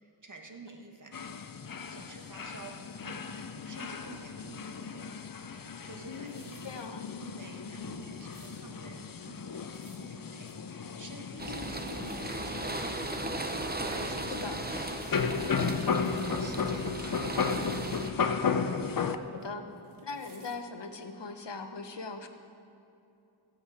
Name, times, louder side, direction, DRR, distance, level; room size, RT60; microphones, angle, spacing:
voice 1, 0.0-1.3 1.9-2.8 3.0-3.3 3.7-5.1 5.8-6.6 7.2-10.5 11.0-13.0 13.8-14.9 15.5-17.9, right 3 dB, 40° right, 3 dB, 1.3 m, -50 dB
sound 1, 1.1-19.2, left 5 dB, 45° left, 0.6 m, -35 dB
sound 2, 5.9-6.9 7.4-7.6 7.8-8.6 9.5-10.1 10.5-10.6 10.9-11.0 11.2-11.6 11.9-12.2 12.8-12.9 13.4-13.5 14.7-16.3 16.6-16.8 17.1-18.0 18.5-19.5 19.7-20.6 21.0-21.1, right 4 dB, 85° right, 1.3 m, -59 dB
voice 2, 6.1-7.1 11.4-11.9 14.3-14.6 19.3-19.6 20.0-22.3, left 4 dB, 60° left, 6 dB, 1.0 m, -40 dB
sound 3, 11.4-18.1, right 2 dB, 20° right, 0.7 m, -36 dB
15.0 x 8.2 x 4.8 m, 2.7 s
wide cardioid pair, 60°, 47 cm